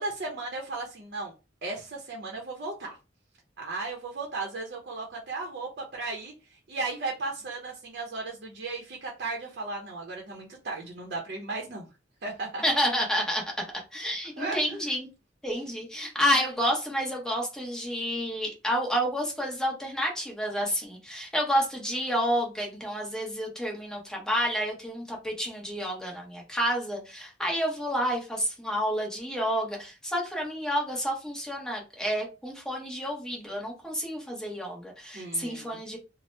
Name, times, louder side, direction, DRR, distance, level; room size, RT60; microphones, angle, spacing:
voice 1, 0.0-1.3 1.6-2.9 3.6-6.3 6.7-11.9 12.2-12.6 14.4-14.8 35.1-35.8, right 3 dB, 60° right, 0 dB, 0.7 m, -35 dB
voice 2, 12.6-13.4 13.9-15.1 15.4-36.0, equal, 5° left, -1 dB, 0.9 m, -29 dB
2.8 x 2.0 x 3.2 m, 0.29 s
head